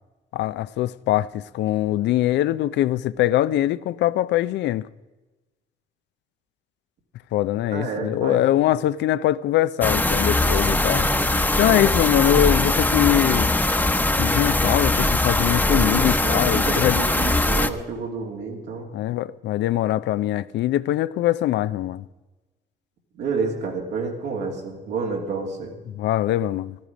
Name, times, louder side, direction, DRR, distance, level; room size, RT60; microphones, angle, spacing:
voice 1, 0.3-4.9 7.3-11.1 11.6-13.5 14.2-17.1 18.9-22.0 25.9-26.8, left 13 dB, 80° left, 0.5 m, -22 dB
voice 2, 7.7-8.7 10.3-10.9 11.7-11.8 15.7-18.9 23.1-25.8, right 4 dB, 90° right, 2.8 m, -30 dB
sound 1, 9.8-17.7, left 2 dB, 10° left, 0.9 m, -21 dB
14.5 x 13.0 x 5.1 m
cardioid pair, 70°, 18 cm